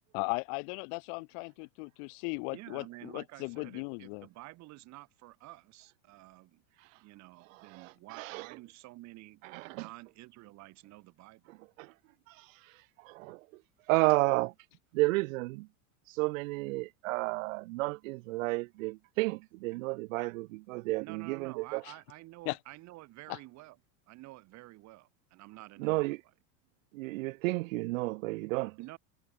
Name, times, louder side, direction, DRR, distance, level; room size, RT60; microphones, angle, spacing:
voice 1, 0.1-4.3 22.5-22.6 23.3-23.4, left 40 dB or more, 50° left, 1.0 m, -37 dB
voice 2, 2.5-9.4 9.7-11.4 21.0-23.8 24.1-26.1 28.8-29.0, right 19 dB, 40° right, 2.8 m, -50 dB
voice 3, 7.5-8.6 9.4-9.9 11.5-11.9 12.3-13.5 13.9-14.5 14.9-15.7 16.1-21.8 25.8-26.2 26.9-28.8, right 23 dB, 70° right, 0.9 m, -32 dB
supercardioid pair, 150°, 42 cm